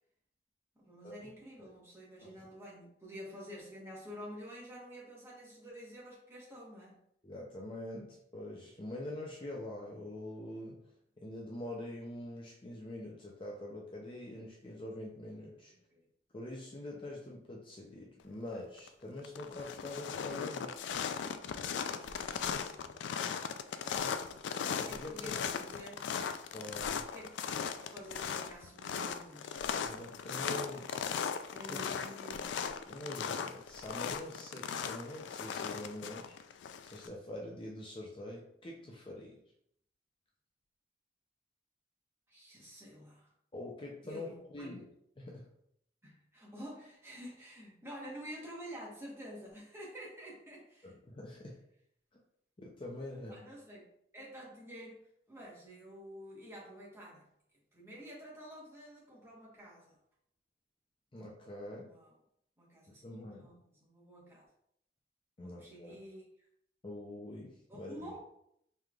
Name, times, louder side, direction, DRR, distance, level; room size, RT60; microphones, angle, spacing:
voice 1, 0.8-7.0 15.9-16.0 21.6-22.2 22.5-23.1 23.8-24.3 24.9-26.3 27.1-29.6 31.5-32.6 42.3-43.3 44.1-44.7 46.0-51.0 53.3-53.9 54.1-55.0 55.3-57.2 57.7-60.0 61.8-62.2 62.6-64.4 65.4-66.3 67.7-68.2, equal, 15° right, -5 dB, 1.2 m, -49 dB
voice 2, 7.2-10.8 11.2-15.7 16.3-20.8 24.0-24.1 24.8-25.4 26.5-27.1 29.8-31.1 31.7-31.8 32.9-36.4 36.8-39.4 43.5-44.8 45.2-45.5 50.8-51.6 52.6-53.4 61.1-61.9 62.9-63.5 65.4-66.0 66.8-68.0, left 1 dB, 30° left, -2 dB, 0.5 m, -45 dB
sound 1, 18.5-18.9 19.2-37.1, left 7 dB, 80° left, 0.3 m, -38 dB
5.4 x 3.2 x 2.4 m, 0.74 s
head